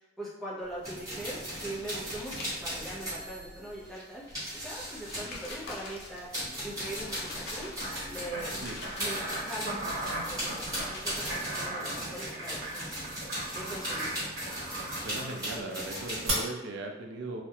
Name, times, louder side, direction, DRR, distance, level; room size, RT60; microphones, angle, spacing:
voice 1, 0.2-4.3 4.5-7.7 8.0-8.5 9.0-13.2 13.5-14.2, right 1 dB, ahead, -8 dB, 0.6 m, -41 dB
sound 1, 0.6-3.9 4.3-9.4 9.7-11.4, left 2 dB, 50° left, 0.5 m, -46 dB
sound 2, 0.8-5.9 6.3-16.4, equal, 20° right, 1.1 m, -38 dB
sound 3, 7.8-15.5 16.3-16.4, right 2 dB, 90° right, 1.0 m, -38 dB
voice 2, 15.0-17.4, right 2 dB, 60° right, 2 dB, 0.4 m, -38 dB
2.3 x 2.1 x 2.8 m, 1.0 s
head